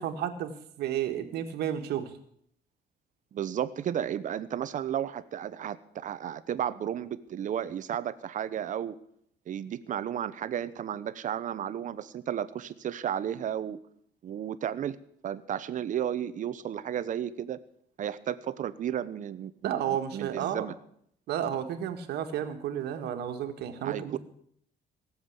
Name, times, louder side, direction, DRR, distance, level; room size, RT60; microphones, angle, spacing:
voice 1, 0.0-2.1 19.6-20.7 21.3-24.2, right 10 dB, 75° right, 6 dB, 1.8 m, -32 dB
voice 2, 3.3-8.9 9.5-13.8 14.2-15.0 15.2-17.6 18.0-20.7 23.8-24.2, right 10 dB, 50° right, 15 dB, 0.9 m, -33 dB
17.5 x 7.4 x 8.1 m, 0.68 s
cardioid pair, 110°, 17 cm